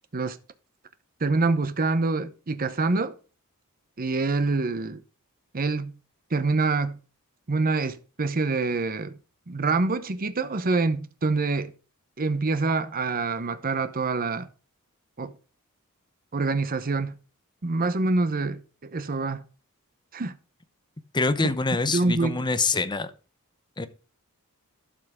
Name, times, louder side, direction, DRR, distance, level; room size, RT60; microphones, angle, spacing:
voice 1, 1.2-3.1 4.0-5.0 5.5-5.9 6.3-7.0 7.5-9.1 9.5-11.7 12.2-14.5 15.2-15.3 16.3-17.2 17.6-18.6 18.9-19.4 20.1-20.3 21.4-21.5 21.9-22.5, right 3 dB, 40° right, 0.8 m, -26 dB
voice 2, 21.1-23.1 23.8-23.9, left 3 dB, 20° left, 0.7 m, -25 dB
12.0 x 5.6 x 3.6 m
head